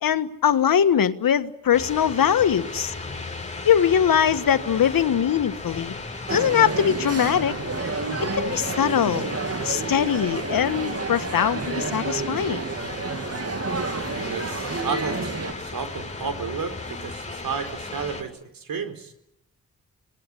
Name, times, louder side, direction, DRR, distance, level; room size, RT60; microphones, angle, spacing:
voice 1, 0.0-2.9 3.6-5.9 6.3-7.5 8.4-9.3 9.6-12.6, left 9 dB, 80° left, 11 dB, 1.6 m, -21 dB
sound 1, 1.7-18.2, left 3 dB, 20° left, 7.2 m, -36 dB
sound 2, 6.3-15.5, right 4 dB, 45° right, 2.5 m, -30 dB
voice 2, 14.1-19.1, right 6 dB, 80° right, 8 dB, 4.5 m, -32 dB
27.0 x 19.0 x 9.9 m, 0.83 s
cardioid pair, 55°, 34 cm